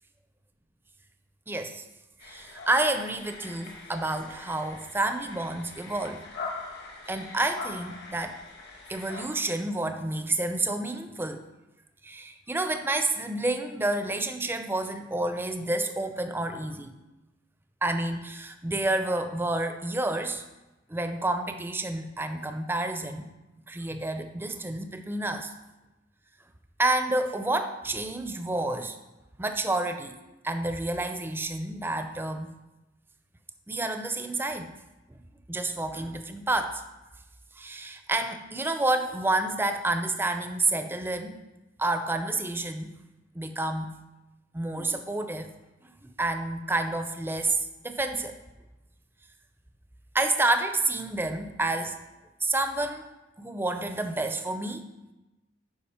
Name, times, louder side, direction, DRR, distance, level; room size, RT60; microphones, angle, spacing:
voice 1, 1.5-1.8 2.2-6.2 7.1-8.4 8.9-11.4 12.0-16.9 17.8-20.4 20.9-23.2 23.7-25.5 26.8-29.0 29.4-30.2 30.4-32.5 33.7-34.7 35.1-35.2 35.5-36.8 37.6-41.4 41.8-42.9 43.3-44.0 44.5-45.5 46.2-48.4 50.1-52.0 52.4-53.1 53.4-54.9, right 2 dB, 10° right, 7 dB, 0.5 m, -29 dB
sound 1, 2.2-9.3, left 3 dB, 60° left, 1.4 m, -42 dB
10.5 x 5.0 x 4.3 m, 1.0 s
head